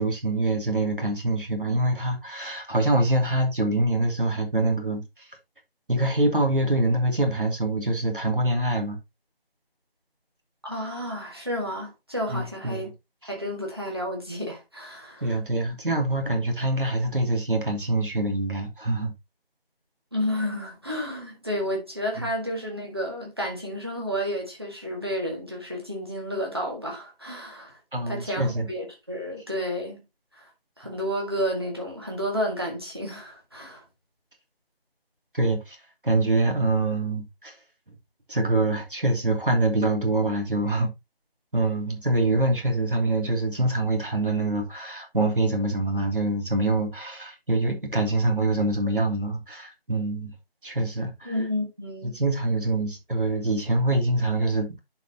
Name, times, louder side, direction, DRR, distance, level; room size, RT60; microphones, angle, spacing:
voice 1, 0.0-5.3 5.9-9.0 12.3-12.8 15.2-19.1 27.9-28.7 35.3-35.8 36.0-37.5 38.3-40.9 41.5-50.3 50.6-51.3 52.0-54.8, right 2 dB, 60° right, 2.7 m, -25 dB
voice 2, 10.6-12.9 13.2-15.4 20.1-27.8 28.1-30.0 30.3-30.5 30.8-33.8 51.2-52.2, equal, 25° right, 1.8 m, -31 dB
10.5 x 4.9 x 2.8 m
figure-of-eight pair, 180°, 30 cm